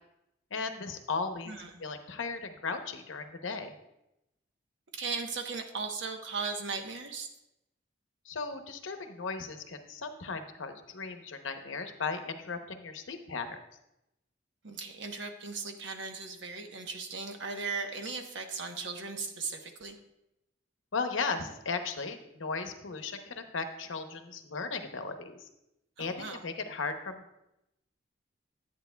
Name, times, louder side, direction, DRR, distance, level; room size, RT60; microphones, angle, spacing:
voice 1, 0.5-1.5 1.8-3.7 8.2-13.6 20.9-25.4 26.0-27.5, left 4 dB, 85° left, 7 dB, 0.8 m, -36 dB
voice 2, 4.9-7.3 14.6-20.0 26.0-26.4, right 4 dB, 70° right, 5 dB, 0.9 m, -37 dB
10.5 x 8.7 x 2.2 m, 0.87 s
head